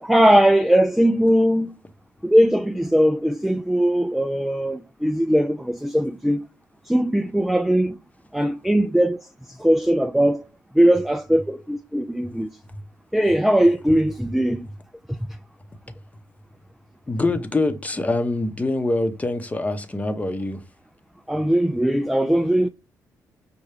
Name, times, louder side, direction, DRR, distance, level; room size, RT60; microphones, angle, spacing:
voice 1, 0.0-1.7 2.2-6.5 6.9-8.0 8.3-9.2 9.5-10.4 10.7-12.5 13.1-14.7 21.3-22.7, equal, ahead, 0.3 m, -19 dB
voice 2, 17.1-20.6, left 2 dB, 20° left, 0.8 m, -24 dB
5.4 x 2.3 x 3.3 m
cardioid pair, 75°, 7 cm